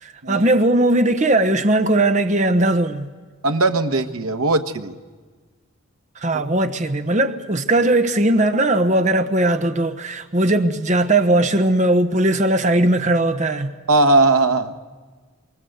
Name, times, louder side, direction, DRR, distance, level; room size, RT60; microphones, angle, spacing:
voice 1, 0.0-3.1 6.2-13.7, right 1 dB, 35° right, 1.0 m, -18 dB
voice 2, 3.4-4.9 13.9-14.7, right 2 dB, 85° right, 1.4 m, -18 dB
29.5 x 24.5 x 8.1 m
head